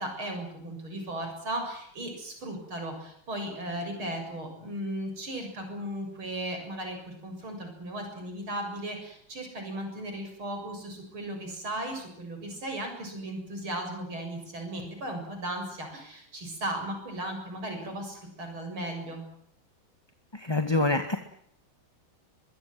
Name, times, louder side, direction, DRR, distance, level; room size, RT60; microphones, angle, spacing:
voice 1, 0.0-19.2, right 1 dB, 80° right, 4 dB, 7.9 m, -36 dB
voice 2, 20.3-21.2, left 2 dB, 15° left, 7 dB, 1.8 m, -26 dB
23.5 x 23.0 x 7.7 m, 0.68 s
omnidirectional pair, 2.3 m